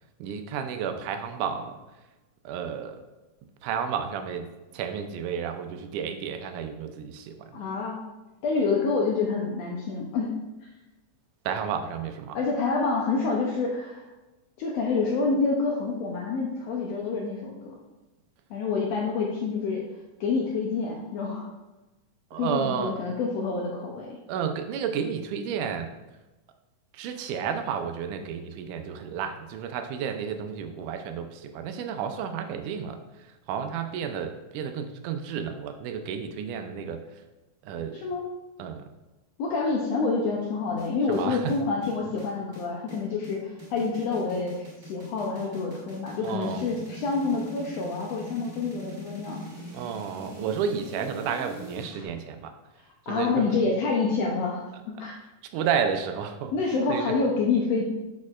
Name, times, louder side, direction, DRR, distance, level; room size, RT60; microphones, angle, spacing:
voice 1, 0.2-1.8 2.5-3.0 3.6-4.5 4.7-7.6 11.4-12.4 22.3-23.0 24.3-25.9 26.9-37.2 37.6-38.0 38.6-38.9 41.1-41.6 46.2-46.6 49.7-52.5 53.1-53.5 55.0-55.1 55.5-56.5 56.9-57.1, right 7 dB, 90° right, 7 dB, 2.1 m, -31 dB
voice 2, 7.5-8.0 8.4-10.3 10.6-10.7 12.3-14.1 14.6-17.7 18.5-19.8 20.2-21.5 22.4-24.2 37.9-38.2 39.4-49.4 53.1-55.1 56.5-57.8, left 4 dB, 75° left, -1 dB, 1.6 m, -27 dB
sound 1, 40.8-52.1, right 1 dB, 30° right, 1.8 m, -44 dB
6.3 x 6.2 x 2.4 m, 1.1 s
omnidirectional pair, 3.5 m